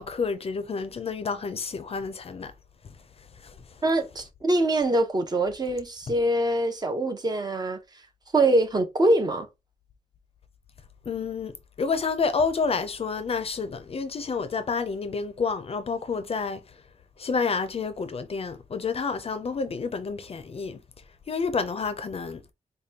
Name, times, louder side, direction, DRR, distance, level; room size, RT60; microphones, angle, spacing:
voice 1, 0.0-2.5 3.4-3.5 11.1-11.5 11.8-16.6 17.2-20.8 21.3-22.4, left 5 dB, 45° left, 0.5 m, -29 dB
voice 2, 3.8-7.8 8.3-9.5, right 1 dB, 30° right, 0.6 m, -24 dB
5.0 x 2.2 x 2.8 m
wide cardioid pair, 165°, 14 cm